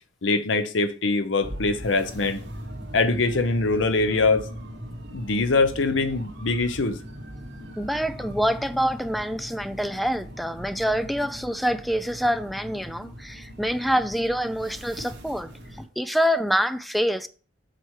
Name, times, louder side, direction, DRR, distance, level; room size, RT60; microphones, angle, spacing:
voice 1, 0.2-2.4 2.9-4.5 5.1-7.0, left 3 dB, 80° left, 0.8 m, -23 dB
sound 1, 1.4-15.8, equal, 60° right, 2.4 m, -40 dB
voice 2, 7.8-17.3, equal, ahead, 0.4 m, -26 dB
7.8 x 4.6 x 4.8 m
head